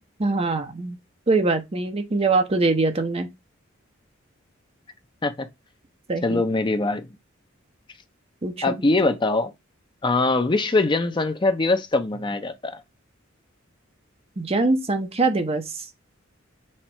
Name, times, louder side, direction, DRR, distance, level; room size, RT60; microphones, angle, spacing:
voice 1, 0.2-1.0 1.3-3.3 6.1-6.4 8.4-8.7 14.4-15.9, right 3 dB, 30° right, 0.7 m, -23 dB
voice 2, 6.2-7.1 8.6-9.5 10.0-12.8, left 2 dB, 25° left, 0.5 m, -22 dB
4.3 x 2.4 x 4.3 m
head